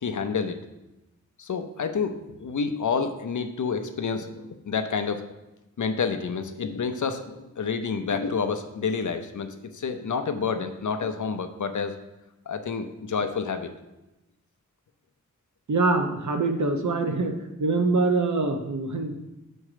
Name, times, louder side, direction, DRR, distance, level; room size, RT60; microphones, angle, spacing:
voice 1, 0.0-0.6 1.4-5.2 5.8-12.0 12.5-13.7, left 5 dB, 70° left, 8 dB, 0.7 m, -29 dB
voice 2, 15.7-17.3 17.6-19.2, right 3 dB, 65° right, 5 dB, 0.9 m, -24 dB
7.4 x 4.4 x 5.0 m, 0.98 s
wide cardioid pair, 90°, 31 cm